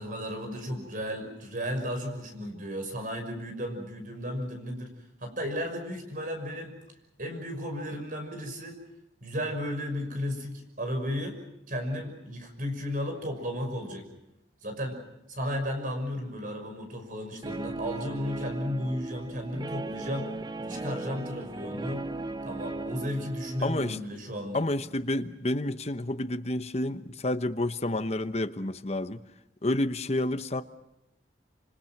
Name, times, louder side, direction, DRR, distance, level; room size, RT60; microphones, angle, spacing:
voice 1, 0.0-4.9 5.2-6.8 7.2-8.8 9.2-11.4 11.7-14.1 14.6-15.0 15.3-20.3 20.6-22.1 22.4-24.6, equal, 50° right, 5 dB, 6.0 m, -34 dB
Guitar, 17.4-24.0, right 2 dB, 25° right, 0.8 m, -37 dB
voice 2, 23.6-24.0 24.5-29.2 29.6-30.6, left 1 dB, 40° left, 9 dB, 1.0 m, -29 dB
27.0 x 26.0 x 6.0 m, 0.87 s
head